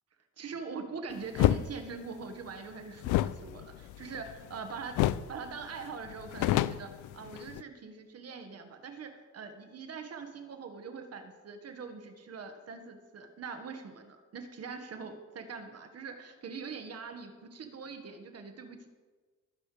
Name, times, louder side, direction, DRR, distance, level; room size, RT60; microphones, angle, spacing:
voice 1, 0.4-5.0 5.3-18.9, right 5 dB, 55° right, 5 dB, 1.6 m, -43 dB
sound 1, 1.3-1.6 3.0-4.6 4.9-5.3 5.6-5.7 6.1-7.6, left 15 dB, 90° left, 0.5 m, -28 dB
21.5 x 9.7 x 3.4 m, 1.4 s
cardioid pair, 90°, 30 cm